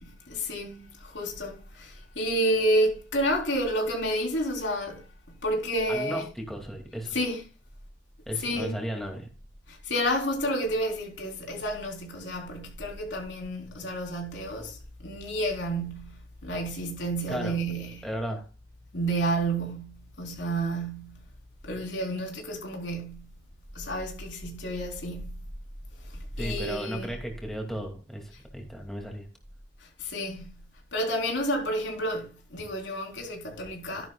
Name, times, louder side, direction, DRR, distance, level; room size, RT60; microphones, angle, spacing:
voice 1, 0.0-6.3 7.1-7.4 8.4-8.8 9.7-18.1 18.9-21.2 21.6-23.3 23.7-25.4 25.9-27.1 28.3-28.4 29.8-30.5 30.9-34.1, right 1 dB, 90° left, 3.7 m, -30 dB
voice 2, 5.9-7.2 8.3-9.3 17.3-17.6 18.0-18.4 26.4-29.3, equal, ahead, 2.3 m, -35 dB
13.0 x 11.0 x 2.3 m
head